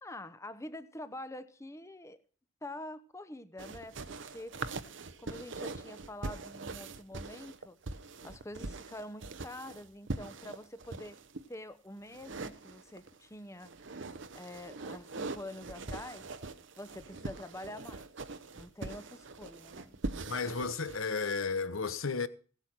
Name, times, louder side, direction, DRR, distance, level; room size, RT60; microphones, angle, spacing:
voice 1, 0.0-2.2 2.6-4.6 5.2-7.8 8.2-11.2 11.5-13.7 14.3-16.3 16.8-18.1 18.6-20.0, left 1 dB, 15° left, 0.8 m, -46 dB
sound 1, 3.6-11.4 12.1-13.2 13.6-21.0, right 3 dB, 60° right, 0.8 m, -42 dB
voice 2, 20.3-22.3, left 4 dB, 80° left, 1.0 m, -33 dB
17.0 x 8.2 x 6.0 m
head